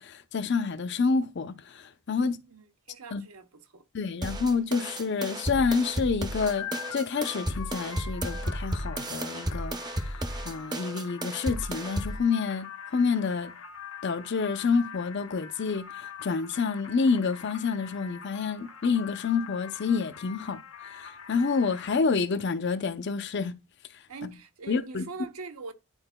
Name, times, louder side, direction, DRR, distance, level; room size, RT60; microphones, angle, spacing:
voice 1, 0.0-2.4 3.1-3.2 3.9-9.8 10.0-10.1 10.4-13.5 14.0-20.6 20.9-23.5 24.2-24.3 24.7-25.0, left 5 dB, 50° left, 0.5 m, -28 dB
voice 2, 2.5-3.8 24.1-25.7, right 4 dB, 85° right, 0.9 m, -43 dB
sound 1, 4.2-12.2, right 1 dB, 20° right, 0.6 m, -33 dB
sound 2, 6.4-22.0, left 7 dB, 75° left, 1.0 m, -44 dB
10.5 x 4.4 x 2.2 m
head